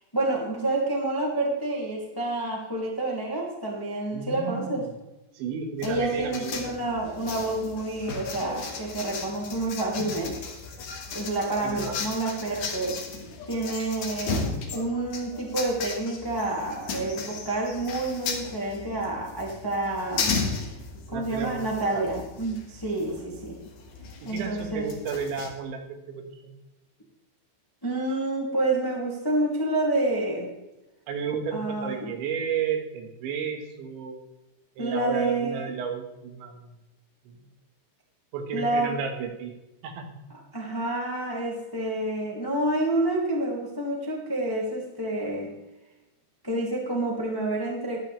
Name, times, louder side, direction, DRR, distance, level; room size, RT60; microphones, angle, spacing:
voice 1, 0.1-4.8 5.8-10.3 11.1-13.0 13.5-14.4 14.7-20.4 21.1-23.6 24.2-24.9 27.8-30.5 31.5-32.1 34.8-35.7 38.5-39.0 40.5-45.5 46.4-48.0, right 2 dB, 15° left, -2 dB, 0.7 m, -28 dB
voice 2, 4.1-4.8 5.3-6.9 11.6-12.1 21.1-22.1 24.2-26.6 31.1-34.2 34.8-36.7 37.3-37.4 38.3-39.5 39.8-40.2, right 6 dB, 75° right, 4 dB, 3.7 m, -33 dB
sound 1, 5.8-25.5, left 4 dB, 55° left, 2.5 m, -35 dB
13.5 x 11.5 x 3.3 m, 1.0 s
omnidirectional pair, 5.4 m